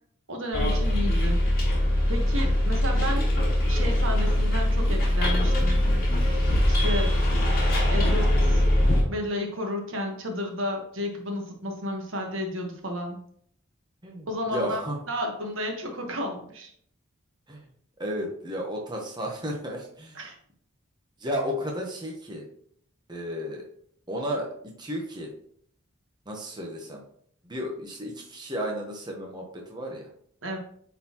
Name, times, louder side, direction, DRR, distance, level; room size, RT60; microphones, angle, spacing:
voice 1, 0.3-1.6 2.1-3.2 3.7-5.8 6.7-7.1 7.9-8.6 9.1-13.2 14.3-14.8 15.1-16.7 20.1-20.3 30.4-30.6, left 1 dB, 65° right, 2 dB, 1.3 m, -32 dB
Bus, 0.5-9.0, left 1 dB, 45° left, 2.4 m, -22 dB
voice 2, 14.0-15.0 17.5-17.7 18.0-20.2 21.2-22.4 23.1-23.6 24.1-25.3 26.3-27.0 27.4-30.1, equal, 20° right, 0 dB, 0.9 m, -33 dB
9.4 x 4.0 x 3.0 m, 0.64 s
head